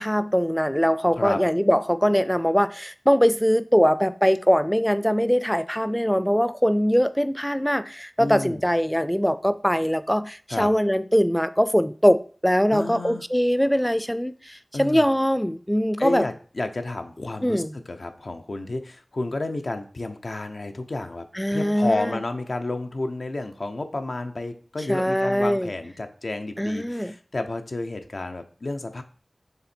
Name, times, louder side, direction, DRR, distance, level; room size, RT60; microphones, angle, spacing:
voice 1, 0.0-16.2 17.4-17.7 21.3-22.2 24.9-25.7 26.6-27.1, equal, 5° left, 0.4 m, -22 dB
voice 2, 8.2-8.6 10.5-10.7 12.7-13.2 14.7-15.0 16.0-17.6 17.9-21.3 21.5-29.0, left 2 dB, 80° left, 0.7 m, -31 dB
6.9 x 3.5 x 4.3 m
wide cardioid pair, 55°, 0 cm